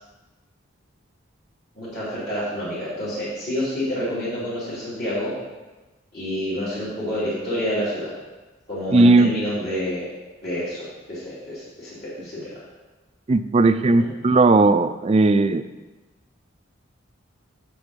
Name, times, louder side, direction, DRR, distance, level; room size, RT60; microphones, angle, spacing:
voice 1, 1.8-5.3 6.1-8.1 8.7-10.1 10.4-12.6 13.9-14.1, equal, 50° left, -11 dB, 3.3 m, -28 dB
voice 2, 8.9-9.3 13.3-15.6, right 3 dB, 30° right, 11 dB, 0.3 m, -16 dB
8.1 x 6.9 x 5.2 m, 1.2 s
head